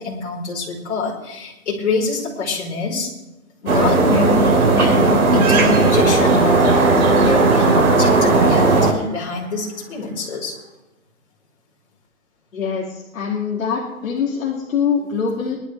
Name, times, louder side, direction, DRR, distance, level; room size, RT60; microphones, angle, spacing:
voice 1, 0.0-3.1 3.6-10.5, left 4 dB, 50° left, -2 dB, 5.0 m, -25 dB
sound 1, 3.7-8.9, right 3 dB, 85° right, 4.4 m, -15 dB
sound 2, 4.5-9.6 9.9-10.0, right 3 dB, 55° right, 3.4 m, -29 dB
voice 2, 12.5-15.6, left 6 dB, 65° left, -3 dB, 2.7 m, -23 dB
22.0 x 12.0 x 3.4 m, 1.0 s
hypercardioid pair, 180°, 42 cm